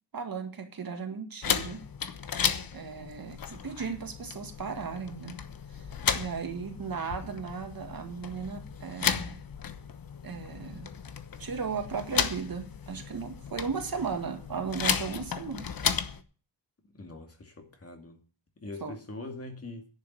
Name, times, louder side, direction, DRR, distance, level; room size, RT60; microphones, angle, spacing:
voice 1, 0.1-1.8 2.7-5.4 5.7-5.9 6.1-9.4 10.2-10.9 11.4-15.7 18.8-19.0, right 5 dB, 55° right, 2.1 m, -36 dB
sound 1, 1.4-16.2, left 7 dB, 55° left, 1.0 m, -34 dB
voice 2, 16.9-18.2 18.6-19.9, left 2 dB, 35° left, 2.3 m, -42 dB
10.5 x 6.9 x 9.2 m
wide cardioid pair, 155°, 43 cm